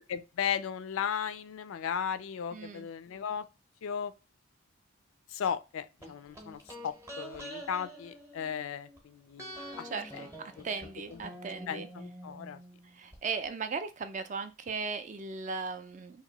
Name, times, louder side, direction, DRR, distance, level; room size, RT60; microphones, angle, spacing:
voice 1, 0.1-3.4 3.8-4.1 5.3-9.9 10.1-10.3 10.6-10.7 11.1-11.2 11.7-12.6, left 8 dB, 75° left, 0.3 m, -36 dB
voice 2, 2.5-2.9 9.9-10.3 10.6-11.9 13.0-16.2, right 4 dB, 35° right, 0.3 m, -37 dB
sound 1, 6.0-9.0 9.4-13.2 13.5-13.6, equal, 15° right, 0.7 m, -47 dB
2.9 x 2.6 x 3.9 m
head